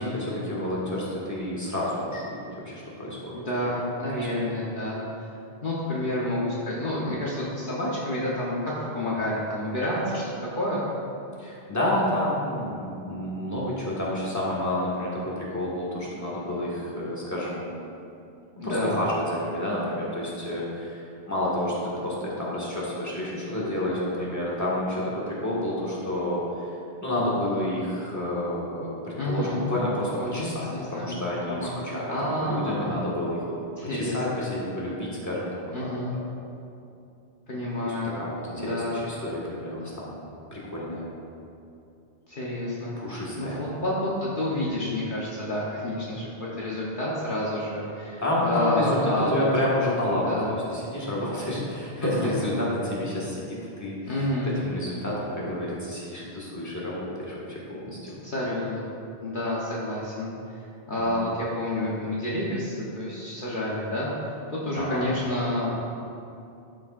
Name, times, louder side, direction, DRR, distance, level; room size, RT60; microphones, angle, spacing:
voice 1, 0.0-3.7 4.1-4.3 11.4-17.8 18.6-26.7 27.0-33.5 33.9-36.2 37.8-40.1 40.5-41.1 43.0-43.6 48.2-58.2 61.0-61.4 64.8-65.1, left 1 dB, 15° left, -6 dB, 1.7 m, -29 dB
voice 2, 3.3-5.3 5.6-10.9 18.6-19.0 29.2-29.6 30.2-31.2 31.5-31.7 32.1-32.9 33.8-34.5 35.7-36.1 37.5-38.2 38.6-39.0 42.3-42.9 43.4-49.4 50.3-50.6 52.0-52.5 54.0-54.6 58.2-58.8 59.2-60.3 60.9-65.8, left 1 dB, 55° left, -7 dB, 1.3 m, -29 dB
12.0 x 6.8 x 2.5 m, 2.6 s
omnidirectional pair, 1.1 m